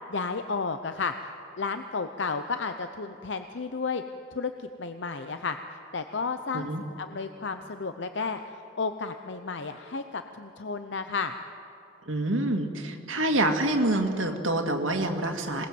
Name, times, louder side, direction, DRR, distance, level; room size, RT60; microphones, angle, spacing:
voice 1, 0.1-1.3 1.6-4.0 4.3-5.6 5.9-6.7 7.0-11.3, left 4 dB, 65° left, 8 dB, 0.8 m, -32 dB
voice 2, 12.1-15.7, right 1 dB, 90° right, 3 dB, 2.1 m, -27 dB
26.0 x 19.5 x 7.8 m, 2.9 s
head